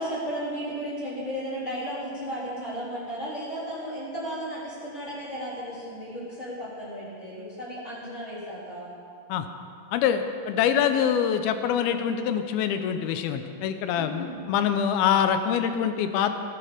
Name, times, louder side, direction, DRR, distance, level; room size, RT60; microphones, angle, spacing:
voice 1, 0.0-8.9 14.0-14.4, equal, 15° left, -8 dB, 3.8 m, -34 dB
voice 2, 9.9-16.3, left 8 dB, 75° left, 8 dB, 2.5 m, -25 dB
17.5 x 12.0 x 5.1 m, 2.4 s
omnidirectional pair, 4.7 m